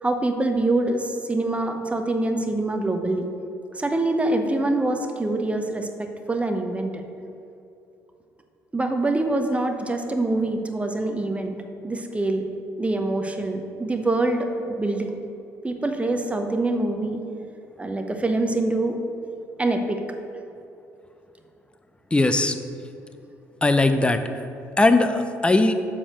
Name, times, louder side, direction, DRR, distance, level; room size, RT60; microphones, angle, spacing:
voice 1, 0.0-3.3 3.7-7.1 8.7-12.5 12.8-15.1 15.6-17.2 17.8-19.0 19.6-20.0, right 2 dB, 15° right, 5 dB, 0.9 m, -25 dB
voice 2, 22.1-22.5 23.6-24.2 24.8-25.7, left 2 dB, 10° left, 8 dB, 0.6 m, -19 dB
7.1 x 4.9 x 6.7 m, 2.7 s
figure-of-eight pair, 50°, 9 cm